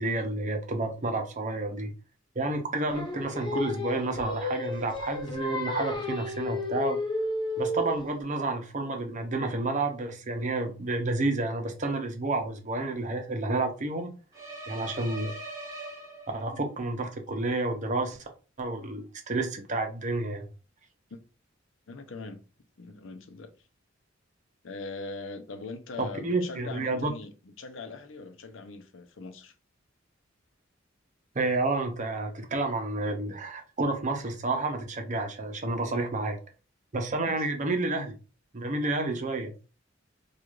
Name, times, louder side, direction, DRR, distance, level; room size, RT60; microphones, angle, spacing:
voice 1, 0.0-1.9 2.4-7.0 7.6-14.1 14.7-15.3 16.3-18.3 18.6-20.5 26.0-27.1 31.3-36.4 36.9-38.1 38.5-39.5, right 2 dB, 40° right, 0.7 m, -30 dB
Singing, 2.9-8.1, left 2 dB, 25° left, 0.7 m, -32 dB
sound 1, 14.3-16.7, right 2 dB, 20° right, 1.1 m, -41 dB
voice 2, 21.9-22.4 22.8-23.5 24.6-29.5 37.3-37.4, left 3 dB, 85° left, 0.6 m, -41 dB
4.6 x 2.4 x 2.4 m
head